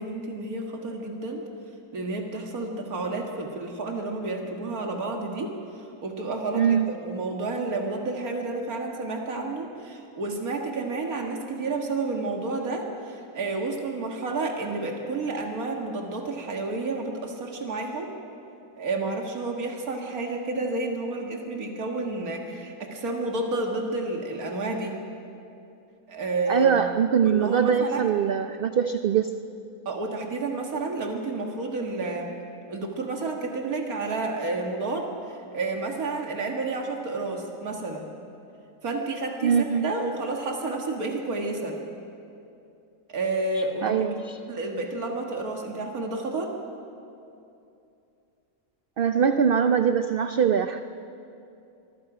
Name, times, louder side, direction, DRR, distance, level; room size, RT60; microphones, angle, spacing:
voice 1, 0.0-1.4 1.9-18.1 18.8-25.0 26.1-26.7 27.2-28.1 29.9-32.3 32.7-38.1 38.8-41.8 43.1-44.1 44.5-46.5, right 3 dB, 85° right, 1 dB, 2.3 m, -30 dB
voice 2, 6.5-6.9 26.5-29.3 39.4-39.9 43.8-44.4 49.0-50.8, right 7 dB, 55° right, 8 dB, 0.6 m, -22 dB
25.0 x 23.0 x 5.0 m, 2.7 s
omnidirectional pair, 1.5 m